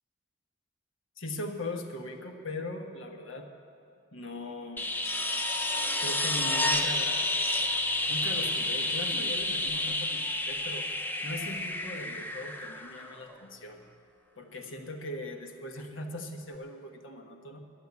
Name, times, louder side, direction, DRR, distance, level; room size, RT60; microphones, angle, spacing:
voice 1, 1.2-3.5 4.1-4.9 6.0-7.3 8.1-10.9 11.2-13.8 14.4-17.6, left 1 dB, 85° left, 3 dB, 1.3 m, -39 dB
sound 1, 4.8-13.4 15.8-15.9, left 2 dB, 10° left, 0.6 m, -30 dB
11.5 x 10.0 x 8.4 m, 2.6 s
head